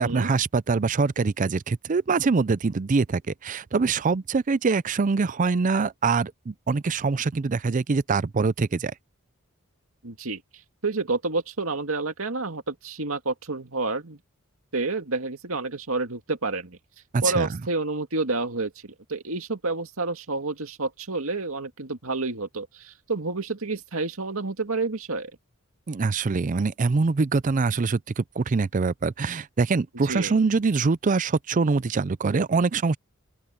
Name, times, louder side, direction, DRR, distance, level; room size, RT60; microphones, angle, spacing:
voice 1, 0.0-8.9 17.1-17.5 25.9-33.0, right 4 dB, 35° right, 0.4 m, -24 dB
voice 2, 10.0-10.4 10.8-14.2 14.7-16.8 17.2-25.3 30.0-30.4, right 3 dB, 70° right, 2.3 m, -29 dB
open air
head